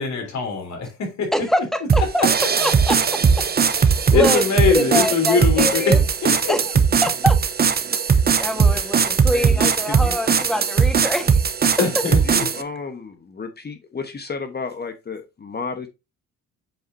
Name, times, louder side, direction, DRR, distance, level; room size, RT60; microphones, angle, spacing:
voice 1, 0.0-1.5 2.2-2.3 3.9-6.5 8.7-8.9 11.8-12.2, left 5 dB, 65° left, 3.4 m, -22 dB
voice 2, 1.3-2.2 2.6-3.5 3.8-4.4 4.7-6.0 6.5-6.6 7.0-7.4 8.4-11.4, equal, ahead, 1.4 m, -25 dB
sound 1, 1.9-12.6, right 6 dB, 30° right, 0.8 m, -19 dB
voice 3, 9.3-10.2 12.3-15.9, left 4 dB, 35° left, 1.2 m, -32 dB
7.8 x 4.8 x 2.7 m
cardioid pair, 90°, 30 cm